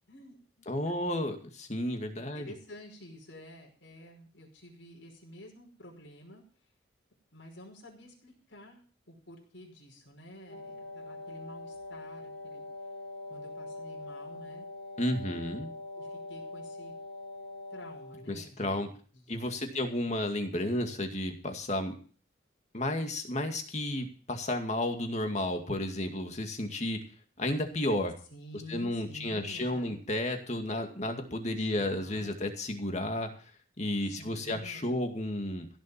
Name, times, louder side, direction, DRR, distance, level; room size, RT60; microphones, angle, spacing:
voice 1, 0.1-1.1 2.2-6.4 7.3-12.7 13.3-14.7 15.2-15.7 16.0-16.9 17.7-20.1 28.3-30.0 31.6-32.4 34.0-35.0, equal, 75° left, -1 dB, 5.3 m, -50 dB
voice 2, 0.7-2.5 15.0-15.7 18.3-18.9 19.3-21.9 22.7-27.0 27.4-28.1 28.7-33.3 33.8-35.7, left 1 dB, 35° left, 5 dB, 2.2 m, -32 dB
Wind instrument woodwind instrument, 10.3-18.3, left 2 dB, 60° left, 3.3 m, -43 dB
16.5 x 7.2 x 7.5 m, 0.41 s
head